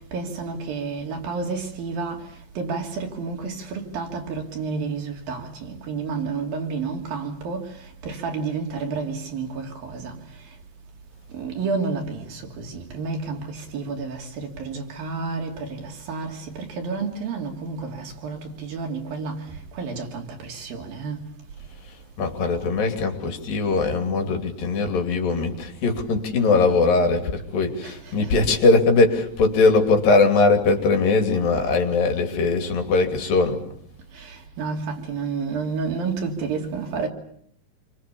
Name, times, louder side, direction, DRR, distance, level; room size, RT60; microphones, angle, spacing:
voice 1, 0.1-2.2 2.6-7.6 8.0-10.1 11.4-13.4 13.7-16.4 16.7-19.4 19.8-21.2 27.8-27.9 28.2-28.3 34.6-37.1, right 4 dB, 85° right, 4.8 m, -30 dB
voice 2, 22.2-33.6, left 3 dB, 80° left, 4.7 m, -20 dB
28.0 x 24.0 x 7.1 m
omnidirectional pair, 4.0 m